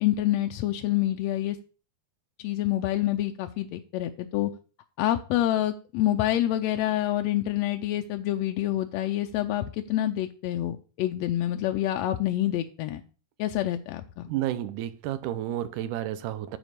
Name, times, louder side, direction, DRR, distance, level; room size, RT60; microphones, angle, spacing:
voice 1, 0.0-1.6 2.4-4.5 5.0-13.0 13.4-14.3, left 13 dB, 80° left, 1.6 m, -27 dB
voice 2, 14.3-16.6, right 12 dB, 90° right, 2.2 m, -31 dB
9.2 x 4.4 x 6.5 m
omnidirectional pair, 3.5 m